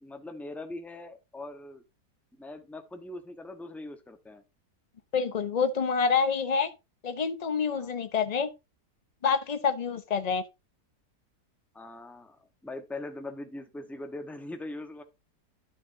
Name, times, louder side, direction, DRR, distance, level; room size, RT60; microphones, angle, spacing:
voice 1, 0.0-1.8 2.4-4.4 7.7-7.9 11.7-12.4 12.6-15.0, left 2 dB, ahead, 0.8 m, -41 dB
voice 2, 5.1-6.7 7.0-8.5 9.2-10.4, left 6 dB, 70° left, 0.3 m, -27 dB
11.5 x 6.5 x 2.7 m
omnidirectional pair, 1.8 m